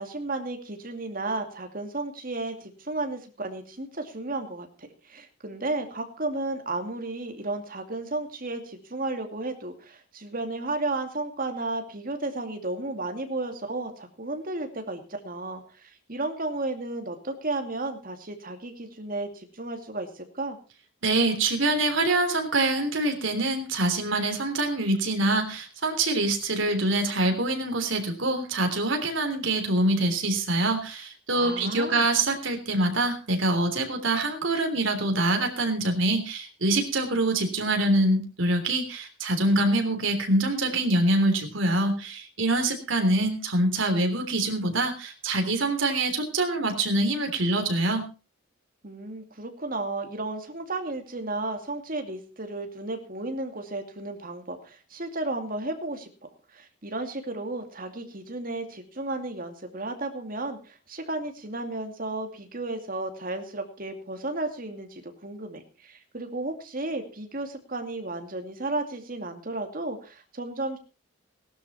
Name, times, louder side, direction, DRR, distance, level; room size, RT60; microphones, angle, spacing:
voice 1, 0.0-20.6 31.3-32.1 48.8-56.1 56.5-70.8, right 2 dB, 45° right, 5 dB, 2.5 m, -33 dB
voice 2, 21.0-48.0, right 2 dB, 65° right, 5 dB, 3.3 m, -25 dB
17.5 x 12.0 x 4.3 m, 0.34 s
head